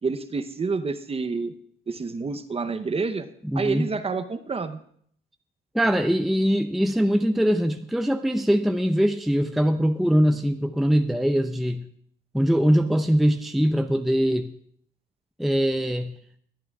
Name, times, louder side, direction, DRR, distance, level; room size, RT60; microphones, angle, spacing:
voice 1, 0.0-1.5 1.9-3.3 3.5-4.8, right 4 dB, 30° right, 10 dB, 0.8 m, -28 dB
voice 2, 3.4-3.9 5.7-11.9 12.3-14.5 15.4-16.2, equal, ahead, 7 dB, 0.5 m, -22 dB
21.5 x 8.6 x 2.4 m, 0.63 s
cardioid pair, 90°, 20 cm